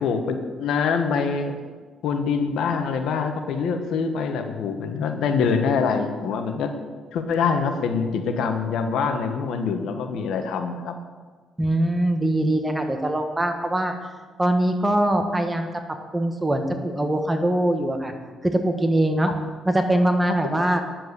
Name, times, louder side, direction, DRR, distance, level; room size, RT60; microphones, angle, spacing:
voice 1, 0.0-1.5 2.0-6.7 7.1-10.9, left 5 dB, 80° left, 7 dB, 1.2 m, -24 dB
voice 2, 11.6-13.9 14.4-15.7 16.1-18.1 18.4-19.3 19.6-20.8, right 1 dB, 15° right, 5 dB, 1.4 m, -22 dB
10.5 x 7.6 x 6.7 m, 1.4 s
cardioid pair, 90°, 0 cm